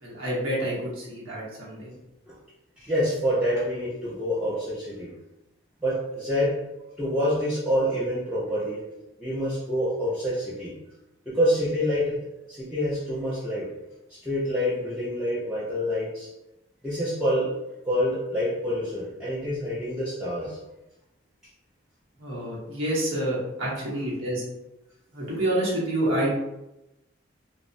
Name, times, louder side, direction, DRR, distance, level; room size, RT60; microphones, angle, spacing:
voice 1, 0.0-1.9 22.2-24.4 25.1-26.3, right 1 dB, 80° right, -6 dB, 0.8 m, -28 dB
voice 2, 2.8-5.1 5.8-6.6 7.0-8.8 9.2-10.7 11.3-12.2 12.5-13.7 14.1-16.3 16.8-17.5 17.9-20.6, equal, 5° right, -11 dB, 0.4 m, -27 dB
2.9 x 2.0 x 2.5 m, 0.93 s
head